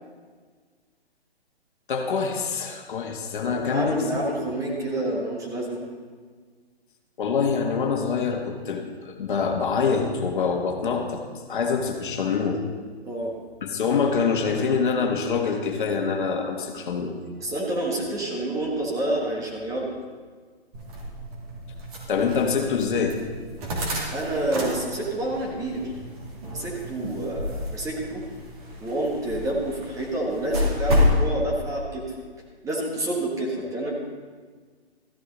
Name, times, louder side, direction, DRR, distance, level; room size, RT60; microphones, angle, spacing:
voice 1, 1.9-4.0 7.2-11.2 11.5-12.6 13.6-17.2 22.1-23.2, left 5 dB, 50° left, 2 dB, 1.6 m, -25 dB
voice 2, 3.4-5.8 13.0-13.3 17.4-19.9 24.1-25.9 26.4-28.2 28.8-32.0 32.6-33.9, right 1 dB, 10° right, -2 dB, 1.5 m, -28 dB
sound 1, 20.7-31.2, left 1 dB, 35° right, 2.9 m, -30 dB
14.0 x 11.0 x 4.0 m, 1.5 s
figure-of-eight pair, 140°, 32 cm